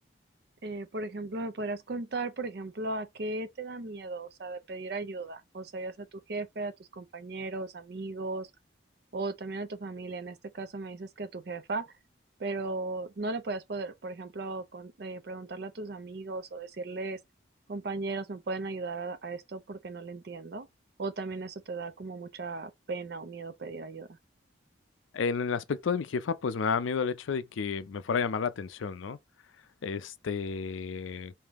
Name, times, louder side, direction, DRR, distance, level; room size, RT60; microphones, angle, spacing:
voice 1, 0.6-8.5 9.1-11.9 12.4-17.2 17.7-20.7 21.0-24.1, right 3 dB, 55° right, 0.5 m, -36 dB
voice 2, 25.1-29.2 29.8-31.3, left 5 dB, 80° left, 0.4 m, -31 dB
3.5 x 2.7 x 3.5 m
head